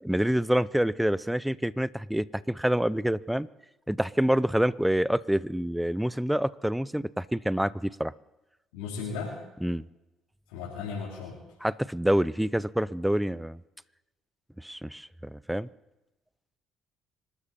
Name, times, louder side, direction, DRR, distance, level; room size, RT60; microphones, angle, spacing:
voice 1, 0.0-3.5 3.9-8.1 9.6-9.8 11.6-13.6 14.6-15.7, equal, 5° right, 19 dB, 0.6 m, -27 dB
voice 2, 8.7-9.4 10.5-11.4, left 5 dB, 90° left, -4 dB, 3.2 m, -35 dB
25.5 x 13.0 x 4.2 m, 1.0 s
supercardioid pair, 70°, 0 cm